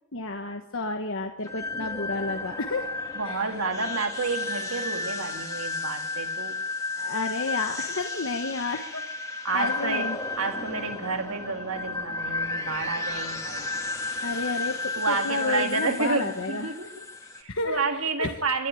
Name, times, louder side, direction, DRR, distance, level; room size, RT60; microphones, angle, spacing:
voice 1, 0.1-2.9 3.2-3.5 7.0-9.0 9.5-10.2 14.2-16.7 17.2-18.4, left 3 dB, 65° left, 4 dB, 1.4 m, -31 dB
sound 1, 1.4-17.4, left 3 dB, 15° left, 2.9 m, -33 dB
voice 2, 3.2-6.6 9.4-13.7 15.0-16.9 17.4-18.7, right 4 dB, 85° right, 7 dB, 2.0 m, -30 dB
27.0 x 11.0 x 9.6 m, 0.90 s
head